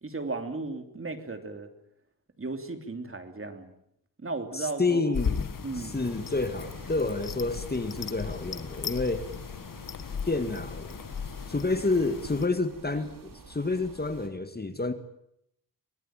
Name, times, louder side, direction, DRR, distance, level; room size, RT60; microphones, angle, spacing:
voice 1, 0.0-1.7 2.4-3.7 4.2-5.0 5.6-6.0, right 3 dB, 35° right, 7 dB, 3.2 m, -35 dB
voice 2, 4.5-9.3 10.3-10.9 11.5-14.9, left 3 dB, 25° left, 9 dB, 2.0 m, -29 dB
sound 1, 5.1-12.5, left 6 dB, 55° left, 1.5 m, -36 dB
sound 2, 5.9-14.3, right 4 dB, 60° right, 4.5 m, -50 dB
24.0 x 19.5 x 9.1 m, 0.76 s
wide cardioid pair, 90°, 39 cm